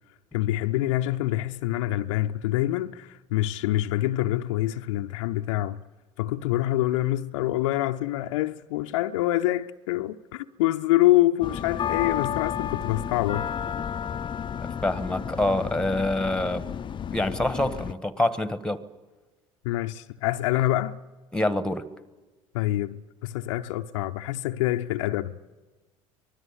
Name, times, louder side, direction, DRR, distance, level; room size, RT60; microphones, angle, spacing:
voice 1, 0.3-5.8 6.2-13.5 19.6-21.0 22.5-25.4, left 15 dB, 65° left, 0.7 m, -26 dB
sound 1, 11.4-17.9, left 8 dB, 30° left, 0.7 m, -32 dB
voice 2, 14.6-16.6 17.1-18.8 21.3-21.8, left 1 dB, 5° left, 1.5 m, -26 dB
24.5 x 20.0 x 8.3 m
figure-of-eight pair, 65°, 17 cm